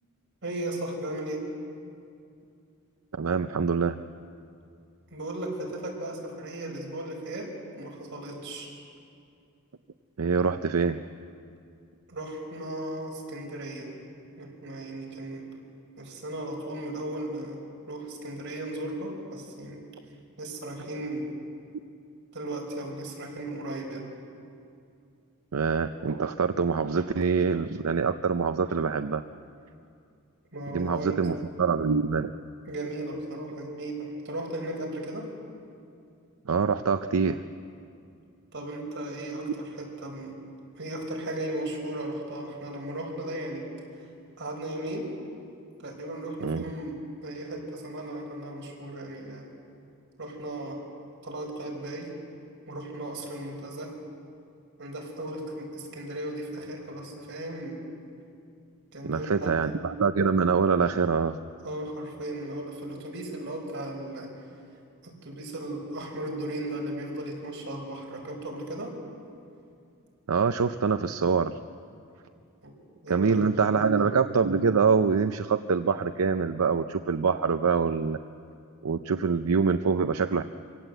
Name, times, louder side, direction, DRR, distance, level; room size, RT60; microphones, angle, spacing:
voice 1, 0.4-1.4 5.1-8.7 12.1-13.9 14.4-15.5 16.0-17.6 17.9-19.9 20.4-21.3 22.3-24.1 30.5-31.2 32.7-35.3 38.5-40.4 40.7-43.6 44.0-44.1 44.4-45.1 45.8-49.5 50.2-50.8 51.2-52.1 52.7-53.9 54.8-57.8 58.9-59.5 61.6-64.3 65.0-69.0 72.6-72.7 73.0-74.0, right 1 dB, 55° right, 0 dB, 5.1 m, -36 dB
voice 2, 3.1-4.0 10.2-11.0 25.5-29.2 30.7-32.3 36.5-37.4 46.4-46.6 59.0-61.4 70.3-71.6 73.1-78.2 78.8-80.4, right 5 dB, 80° right, 9 dB, 0.6 m, -25 dB
25.5 x 17.5 x 7.9 m, 2.5 s
head